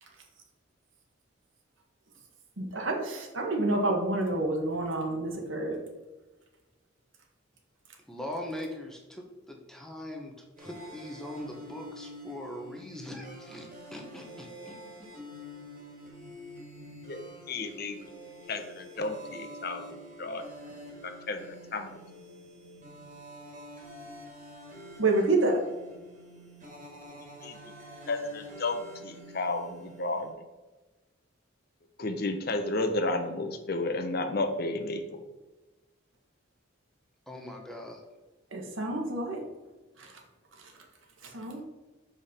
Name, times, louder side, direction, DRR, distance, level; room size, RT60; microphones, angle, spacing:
voice 1, 2.6-5.8 25.0-25.6 38.5-39.4 40.0-40.2 40.6-40.8 41.2-41.6, right 2 dB, 70° right, 1 dB, 1.4 m, -28 dB
voice 2, 8.1-15.1 37.3-38.0, left 1 dB, ahead, 1 dB, 0.9 m, -41 dB
sound 1, 10.6-30.3, equal, 40° right, 1.9 m, -47 dB
voice 3, 17.5-18.1 18.5-20.4 20.7-22.0 27.4-27.6 28.1-30.3 32.0-35.2, left 2 dB, 50° left, 7 dB, 0.7 m, -32 dB
7.0 x 5.1 x 4.3 m, 1.2 s
head